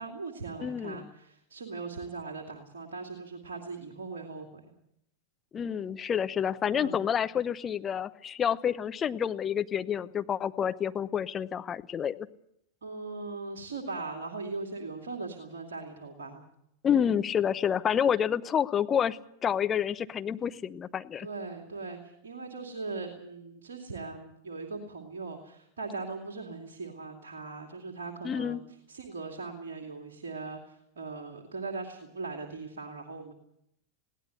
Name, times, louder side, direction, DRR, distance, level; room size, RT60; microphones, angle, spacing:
voice 1, 0.0-4.6 6.7-7.0 12.8-16.4 21.2-28.6 28.9-33.3, right 3 dB, 65° right, 3 dB, 2.5 m, -39 dB
voice 2, 0.6-1.1 5.5-12.3 16.8-21.3 28.2-28.6, left 8 dB, 25° left, 11 dB, 0.9 m, -29 dB
21.0 x 17.5 x 8.0 m, 0.76 s
figure-of-eight pair, 90°, 0 cm